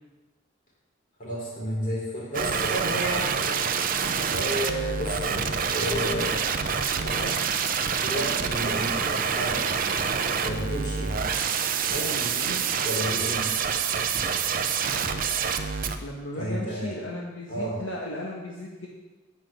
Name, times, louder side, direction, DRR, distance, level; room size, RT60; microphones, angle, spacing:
voice 1, 1.2-3.6 4.2-6.4 7.0-7.4 8.0-9.7 10.4-11.3 11.8-13.5 16.3-16.9 17.5-17.8, equal, 45° left, -5 dB, 3.9 m, -32 dB
sound 1, 2.3-16.0, right 6 dB, 50° right, 0.6 m, -27 dB
Thump thud, 9.9-10.5 11.9-12.4 14.1-14.8, equal, 20° right, 1.1 m, -44 dB
voice 2, 16.0-18.9, left 1 dB, 80° left, -3 dB, 1.5 m, -35 dB
8.3 x 6.2 x 7.6 m, 1.2 s
head